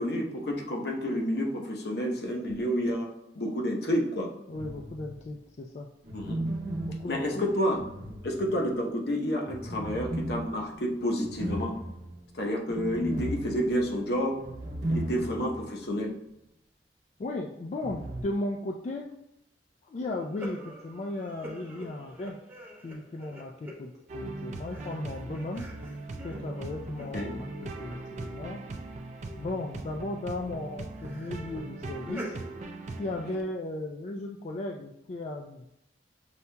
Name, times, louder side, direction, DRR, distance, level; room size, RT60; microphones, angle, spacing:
voice 1, 0.0-3.1 3.3-4.3 6.1-6.4 7.1-7.8 8.2-11.7 12.3-14.4 14.9-16.1 27.1-27.3, equal, 65° left, 0 dB, 0.8 m, -29 dB
voice 2, 4.5-5.9 7.0-7.5 17.2-19.1 19.8-22.4 22.8-25.7 26.2-28.6 29.4-32.4 33.0-35.7, left 2 dB, 40° left, 1 dB, 0.3 m, -36 dB
sound 1, 4.5-5.3 6.0-8.8 9.5-15.7 16.0-16.1 17.8-18.2, right 1 dB, 85° right, 0.9 m, -36 dB
sound 2, 20.1-24.3 24.6-28.7 29.3-29.8 30.9-32.5, left 1 dB, 10° right, 0.8 m, -46 dB
sound 3, 24.1-33.4, right 2 dB, 40° right, 0.4 m, -40 dB
6.7 x 2.7 x 2.2 m, 0.84 s
head